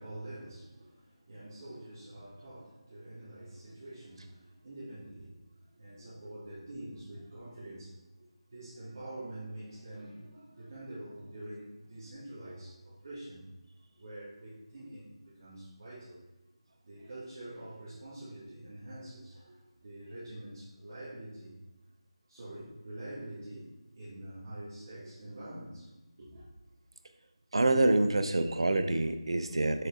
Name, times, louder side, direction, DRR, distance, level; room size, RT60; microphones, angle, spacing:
voice 1, 0.0-5.4 5.6-13.5 14.0-16.2 16.8-21.6 22.3-25.9 26.2-26.5, right 1 dB, 40° right, -11 dB, 2.0 m, -46 dB
voice 2, 27.5-29.9, right 2 dB, 60° right, 8 dB, 0.6 m, -26 dB
6.6 x 3.9 x 3.7 m, 1.0 s
figure-of-eight pair, 170°, 3 cm